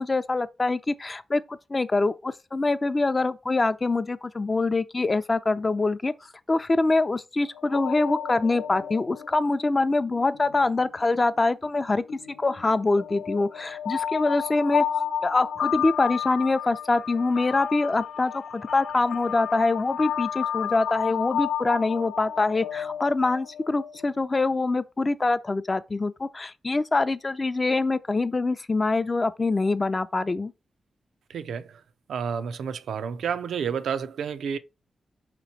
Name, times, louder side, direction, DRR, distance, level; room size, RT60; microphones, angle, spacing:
voice 1, 0.0-6.1 6.5-12.0 12.4-14.8 15.2-30.5, left 3 dB, 35° left, 0.4 m, -24 dB
sound 1, 7.4-11.0 11.7-24.2, left 8 dB, 85° left, 0.5 m, -32 dB
voice 2, 31.3-31.8 32.1-34.6, right 7 dB, 90° right, 0.3 m, -30 dB
4.2 x 3.0 x 4.0 m
cardioid pair, 65°, 0 cm